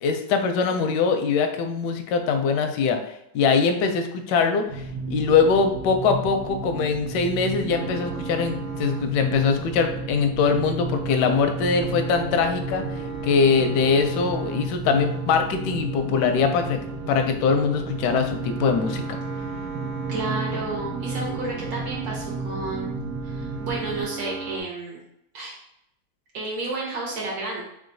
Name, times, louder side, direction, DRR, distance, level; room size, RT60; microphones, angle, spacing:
voice 1, 0.0-3.0 3.3-12.8 13.2-16.8 17.1-19.2, left 5 dB, 75° left, 6 dB, 1.0 m, -22 dB
sound 1, 4.7-24.0, right 3 dB, 85° right, 1.6 m, -33 dB
sound 2, 7.7-24.6, right 4 dB, 50° right, 1.0 m, -37 dB
voice 2, 20.1-22.9 23.2-25.0 25.3-25.6 26.3-27.6, right 2 dB, 70° right, -3 dB, 1.5 m, -31 dB
3.7 x 3.6 x 2.6 m, 0.80 s
omnidirectional pair, 2.2 m